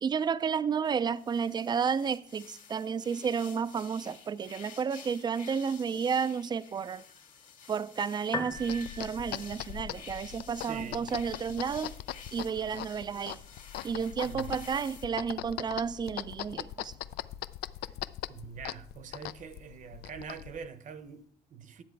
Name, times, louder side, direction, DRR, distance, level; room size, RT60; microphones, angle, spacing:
voice 1, 0.0-7.0 7.7-11.9 12.3-13.4 13.8-17.0, right 6 dB, 25° right, 0.4 m, -31 dB
sound 1, 0.8-15.0, left 6 dB, 50° left, 1.9 m, -51 dB
Piano, 8.2-21.2, left 3 dB, 20° left, 0.9 m, -48 dB
sound 2, 8.5-20.7, left 13 dB, 70° left, 0.4 m, -41 dB
voice 2, 10.7-11.1 14.2-14.5 18.3-21.8, right 6 dB, 50° right, 0.9 m, -44 dB
10.5 x 7.5 x 4.6 m
cardioid pair, 110°, 17 cm